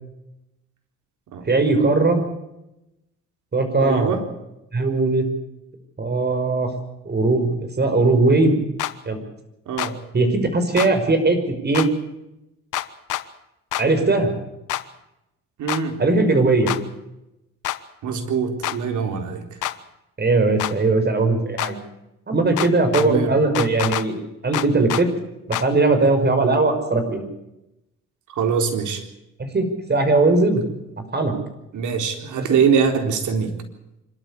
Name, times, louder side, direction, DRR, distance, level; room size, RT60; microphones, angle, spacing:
voice 1, 1.4-2.2 3.5-4.2 4.7-5.3 6.0-6.7 7.1-8.6 9.1-9.2 10.1-11.9 13.8-14.3 16.0-16.7 20.2-21.8 22.3-25.1 25.5-27.2 29.4-30.6 31.1-31.4 32.4-32.5, right 3 dB, 35° right, 7 dB, 5.8 m, -19 dB
voice 2, 3.8-4.2 9.7-9.9 15.6-16.0 18.0-19.4 23.0-23.3 28.4-29.0 31.7-33.5, right 6 dB, 75° right, 5 dB, 4.1 m, -22 dB
sound 1, 8.8-8.9 9.8-9.9 10.8-10.9 11.7-11.9 12.7-13.2 13.7-13.9 14.7-14.8 15.7-15.8 16.7-16.8 17.6-17.8 18.6-18.8 19.6-19.8 20.6-20.7 21.6-21.7 22.6-23.1 23.6-24.1 24.5-25.0 25.5-25.7, left 14 dB, 85° left, 1.2 m, -26 dB
26.0 x 13.0 x 8.4 m, 0.89 s
cardioid pair, 90°, 30 cm